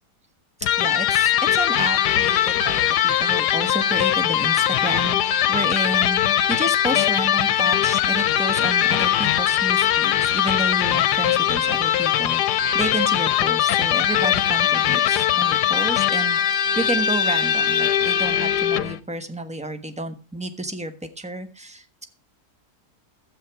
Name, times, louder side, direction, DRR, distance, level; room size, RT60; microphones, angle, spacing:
Electric guitar, 0.6-19.0, left 10 dB, 85° left, 1.3 m, -21 dB
voice 1, 0.8-6.2 6.5-22.1, right 1 dB, 5° right, 8 dB, 1.0 m, -30 dB
12.0 x 8.4 x 4.8 m, 0.33 s
omnidirectional pair, 1.7 m